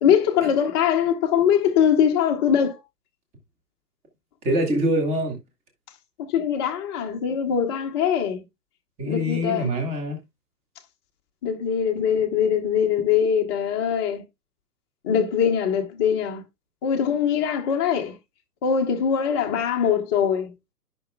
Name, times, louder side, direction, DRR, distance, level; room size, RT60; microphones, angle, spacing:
voice 1, 0.0-2.8 6.3-8.4 9.0-9.7 11.4-14.2 15.0-16.4 16.8-18.1 18.6-20.5, left 8 dB, 15° left, 0.8 m, -22 dB
voice 2, 4.4-5.4 9.0-10.2, equal, 15° right, 1.6 m, -24 dB
13.0 x 6.1 x 2.2 m
figure-of-eight pair, 125°, 47 cm